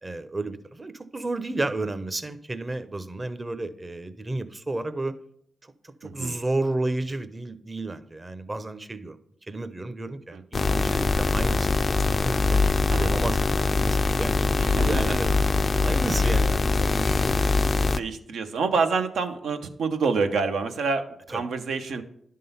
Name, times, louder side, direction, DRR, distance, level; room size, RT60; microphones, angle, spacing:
voice 1, 0.0-5.1 5.8-9.2 9.5-11.7 12.2-15.3 15.8-17.2 21.3-21.4, right 2 dB, 30° right, 12 dB, 0.8 m, -32 dB
voice 2, 6.0-6.3 10.3-10.4 12.9-13.2 14.6-15.0 15.9-16.0 18.0-22.0, right 4 dB, 80° right, 6 dB, 0.8 m, -27 dB
sound 1, 10.5-18.0, left 3 dB, 50° left, 0.4 m, -23 dB
11.0 x 3.8 x 5.6 m, 0.70 s
supercardioid pair, 45°, 0 cm